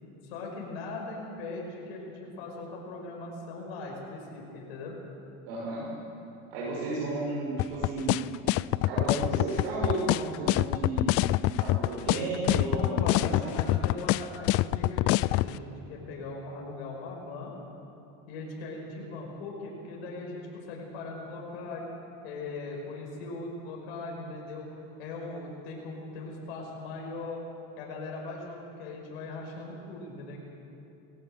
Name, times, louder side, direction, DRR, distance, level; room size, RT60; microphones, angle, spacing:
voice 1, 0.2-5.0 12.7-17.5 18.3-21.9 22.2-24.7 25.0-27.4 27.8-30.4, left 3 dB, 85° left, -1 dB, 5.6 m, -39 dB
voice 2, 5.5-5.9 6.5-8.2 8.8-13.7, right 2 dB, 80° right, -6 dB, 7.1 m, -33 dB
sound 1, 7.6-15.5, left 18 dB, 50° left, 0.4 m, -25 dB
21.0 x 17.5 x 7.7 m, 2.8 s
supercardioid pair, 120°, 30 cm